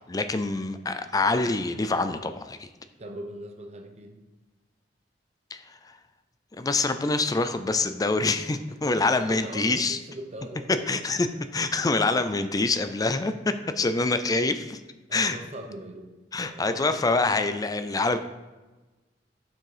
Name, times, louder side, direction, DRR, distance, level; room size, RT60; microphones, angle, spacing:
voice 1, 0.1-2.7 5.5-5.8 6.6-10.0 10.9-11.3 11.5-14.8 15.1-15.4 16.3-18.2, left 3 dB, 20° left, 10 dB, 0.4 m, -25 dB
voice 2, 3.0-4.2 8.7-11.4 15.1-16.1 16.4-17.1, right 1 dB, 35° right, 4 dB, 0.9 m, -41 dB
7.2 x 6.2 x 4.9 m, 1.2 s
head